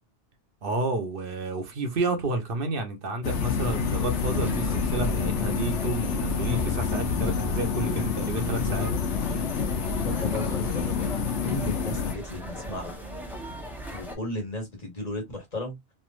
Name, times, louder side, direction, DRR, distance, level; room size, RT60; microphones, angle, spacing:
voice 1, 0.6-8.9, right 3 dB, 55° right, 0.9 m, -30 dB
sound 1, 3.2-12.1, left 6 dB, 85° left, 0.9 m, -28 dB
sound 2, 3.7-14.2, equal, ahead, 0.6 m, -38 dB
voice 2, 10.0-11.1 11.4-12.9 13.9-15.7, left 1 dB, 35° left, 1.4 m, -34 dB
3.2 x 2.6 x 2.4 m
omnidirectional pair, 1.1 m